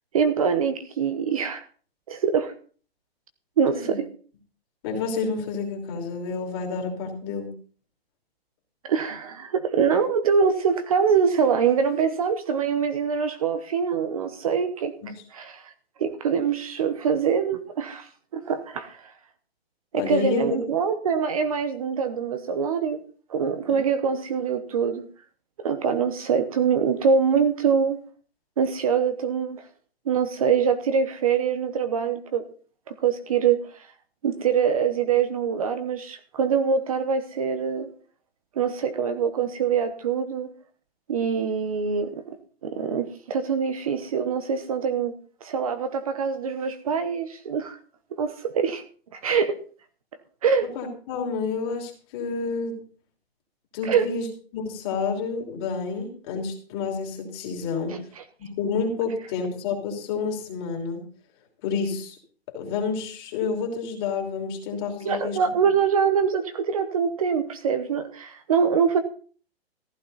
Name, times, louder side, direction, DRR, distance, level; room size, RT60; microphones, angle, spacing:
voice 1, 0.1-1.6 2.1-2.5 3.6-4.1 8.8-14.9 15.3-15.7 16.0-19.1 19.9-23.0 23.3-25.0 25.6-28.0 28.6-29.6 30.1-32.4 32.9-33.9 34.2-37.9 38.6-40.5 41.1-42.4 42.6-45.1 45.4-47.8 48.2-48.8 49.1-49.6 50.4-50.7 53.8-54.1 57.9-58.0 65.0-69.0, right 6 dB, 35° right, 9 dB, 1.0 m, -24 dB
voice 2, 4.8-7.5 15.0-15.1 19.9-20.6 23.7-23.8 50.7-52.8 53.7-54.3 54.5-58.0 58.4-61.0 61.6-62.2 62.5-65.4, left 5 dB, 25° left, 2 dB, 3.0 m, -29 dB
15.0 x 12.0 x 4.1 m, 0.42 s
hypercardioid pair, 170°, 31 cm